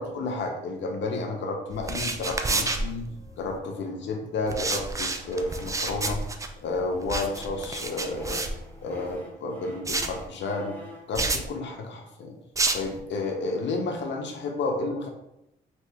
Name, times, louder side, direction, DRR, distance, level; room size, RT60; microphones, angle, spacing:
voice 1, 0.0-3.1 3.4-6.2 6.6-8.4 8.8-10.8 11.1-12.4 12.7-15.1, left 3 dB, 65° left, 3 dB, 0.8 m, -31 dB
sound 1, 1.7-3.6 4.5-9.1 9.8-10.2 11.1-11.5 12.6-13.0, right 3 dB, 15° right, 0.3 m, -30 dB
sound 2, 2.2-6.4 6.8-11.1, left 1 dB, 10° left, 1.3 m, -47 dB
2.9 x 2.9 x 3.4 m, 0.84 s
cardioid pair, 90°, 20 cm